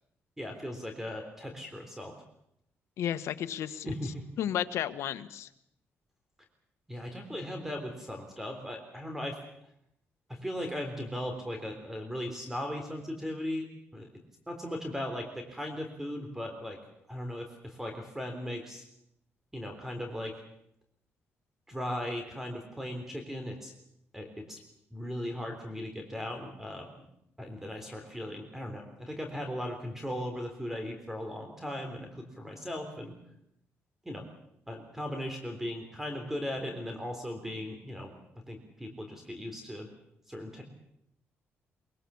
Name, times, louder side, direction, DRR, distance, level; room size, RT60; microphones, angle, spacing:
voice 1, 0.4-2.1 3.6-4.2 6.9-9.4 10.3-13.7 13.9-14.1 14.5-16.8 17.1-18.9 19.5-20.4 21.7-23.7 24.1-24.6 24.9-26.9 27.4-33.1 34.0-34.2 34.7-38.1 38.5-39.9 40.3-40.6, left 1 dB, 5° right, 5 dB, 3.6 m, -38 dB
voice 2, 3.0-3.9 4.4-5.5, left 10 dB, 90° left, 10 dB, 1.3 m, -32 dB
23.0 x 22.0 x 7.2 m, 0.76 s
cardioid pair, 135°, 5 cm